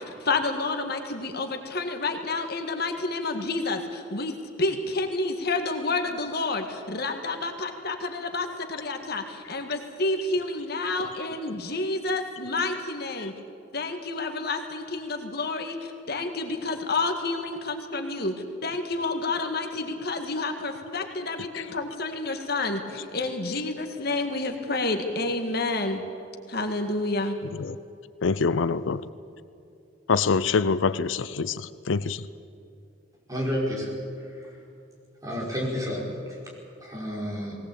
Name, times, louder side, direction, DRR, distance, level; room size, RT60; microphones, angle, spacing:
voice 1, 0.2-13.3 13.7-18.3 18.6-26.0 26.5-27.4, left 3 dB, 55° left, 5 dB, 1.9 m, -29 dB
voice 2, 28.2-29.0 30.1-32.2, left 4 dB, 85° left, 15 dB, 0.6 m, -25 dB
voice 3, 33.3-33.9 34.2-34.5 35.2-36.0 36.3-36.4 36.8-37.6, equal, 20° right, -2 dB, 4.9 m, -30 dB
20.0 x 18.5 x 8.5 m, 2.6 s
head